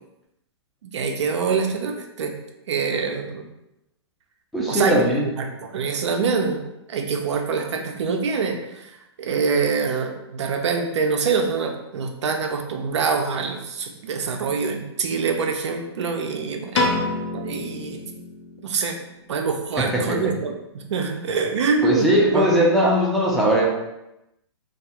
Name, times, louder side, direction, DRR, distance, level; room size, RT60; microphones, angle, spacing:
voice 1, 0.8-2.3 2.7-3.4 4.7-5.1 5.4-6.6 6.9-8.9 9.2-17.1 17.3-18.2 18.6-19.0 19.3-22.5, right 5 dB, 80° right, 4 dB, 0.5 m, -25 dB
voice 2, 4.5-5.3 19.8-20.2 21.8-23.7, equal, ahead, -5 dB, 0.5 m, -19 dB
Piano, 16.7-19.0, left 2 dB, 80° left, 0.6 m, -27 dB
2.3 x 2.3 x 2.8 m, 0.89 s
hypercardioid pair, 140°, 15 cm